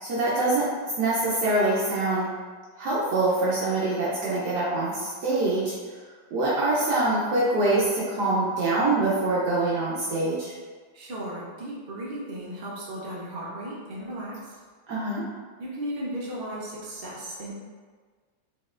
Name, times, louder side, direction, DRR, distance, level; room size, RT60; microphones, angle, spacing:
voice 1, 0.0-0.7 1.0-2.3 2.8-5.7 6.3-10.5 14.9-15.2, right 2 dB, 65° right, -7 dB, 1.2 m, -24 dB
voice 2, 10.9-14.6 15.6-17.5, right 1 dB, 80° right, -6 dB, 0.5 m, -35 dB
5.3 x 2.8 x 2.4 m, 1.5 s
omnidirectional pair, 2.2 m